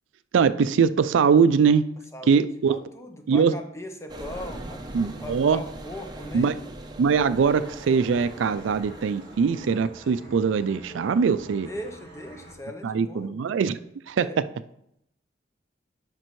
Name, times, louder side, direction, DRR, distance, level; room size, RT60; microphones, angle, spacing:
voice 1, 0.3-1.8 2.2-2.8 3.3-3.5 4.9-5.6 6.3-6.5 7.0-11.7 12.8-13.8 14.1-14.3, right 6 dB, 80° right, 13 dB, 0.4 m, -22 dB
voice 2, 2.1-6.5 11.7-13.4 14.2-14.4, left 1 dB, 15° left, 5 dB, 0.6 m, -39 dB
sound 1, 4.1-10.3, right 1 dB, 20° right, 0.6 m, -41 dB
sound 2, 7.4-12.5, right 1 dB, 35° left, 3.3 m, -46 dB
11.0 x 5.2 x 3.1 m, 0.77 s
head